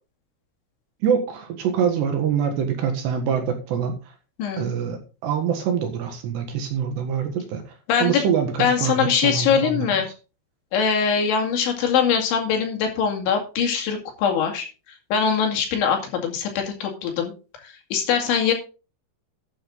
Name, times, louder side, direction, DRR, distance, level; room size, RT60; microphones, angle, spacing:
voice 1, 1.0-4.0 4.6-7.6 8.0-9.9, right 7 dB, 65° right, 5 dB, 3.4 m, -24 dB
voice 2, 7.9-8.2 8.6-10.1 10.7-14.7 15.1-17.3 17.6-18.5, left 7 dB, 70° left, 3 dB, 4.5 m, -22 dB
12.5 x 8.3 x 3.9 m, 0.34 s
omnidirectional pair, 5.8 m